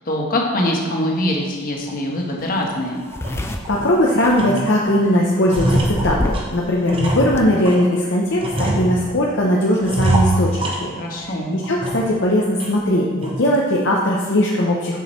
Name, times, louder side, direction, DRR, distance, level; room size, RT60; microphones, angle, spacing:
voice 1, 0.1-3.0 11.0-11.6, left 1 dB, 40° left, 0 dB, 1.1 m, -23 dB
sound 1, 1.9-2.0 2.5-2.6 3.0-4.0 4.3-5.0 5.2-7.9 8.4-9.3 9.8-11.3 11.6-12.2 12.6-12.7 13.2-13.6, right 1 dB, 25° right, 0.9 m, -24 dB
sound 2, 2.4-2.5 2.7-5.1 5.5-6.6 6.9-7.4, left 1 dB, 10° left, 0.3 m, -27 dB
voice 2, 3.4-10.9 11.2-15.0, left 1 dB, 55° left, -3 dB, 0.7 m, -19 dB
7.1 x 6.2 x 4.3 m, 1.5 s
head